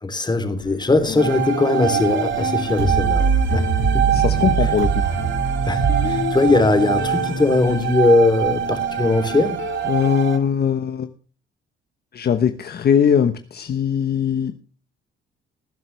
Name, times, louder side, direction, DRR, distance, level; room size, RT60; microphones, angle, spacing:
voice 1, 0.0-3.6 3.9-4.0 4.6-4.7 5.7-9.6, left 3 dB, 20° left, 7 dB, 3.3 m, -20 dB
sound 1, 0.6-10.1, left 10 dB, 80° left, 1.9 m, -32 dB
sound 2, 1.2-10.4, right 10 dB, 70° right, 2.2 m, -25 dB
sound 3, 2.8-8.4, right 5 dB, 85° right, 7.5 m, -23 dB
voice 2, 4.1-5.1 9.9-11.1 12.1-14.5, left 8 dB, 55° left, 9 dB, 1.1 m, -20 dB
19.0 x 10.5 x 3.4 m, 0.36 s
cardioid pair, 90°, 20 cm